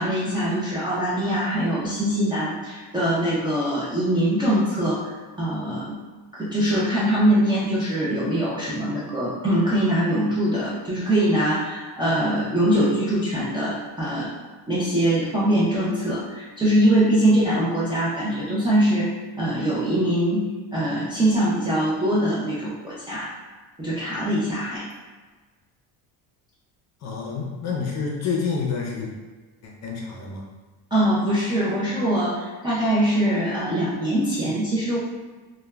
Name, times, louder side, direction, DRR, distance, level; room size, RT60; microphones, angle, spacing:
voice 1, 0.0-6.0 6.3-14.3 14.7-19.1 19.4-23.3 23.8-24.8 30.9-35.0, right 1 dB, 15° right, -9 dB, 0.3 m, -23 dB
voice 2, 27.0-29.1 29.6-30.4, left 5 dB, 45° left, -1 dB, 0.5 m, -28 dB
2.2 x 2.1 x 3.3 m, 1.3 s
cardioid pair, 155°, 38 cm